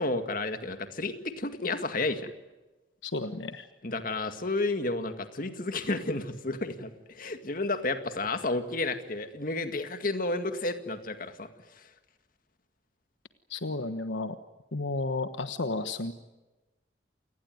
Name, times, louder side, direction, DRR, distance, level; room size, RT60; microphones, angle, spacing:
voice 1, 0.0-2.3 3.8-11.9, left 2 dB, 45° left, 8 dB, 2.0 m, -31 dB
voice 2, 3.0-3.7 13.5-14.4 14.7-16.1, left 3 dB, 75° left, 9 dB, 1.2 m, -32 dB
28.5 x 19.0 x 9.4 m, 1.1 s
head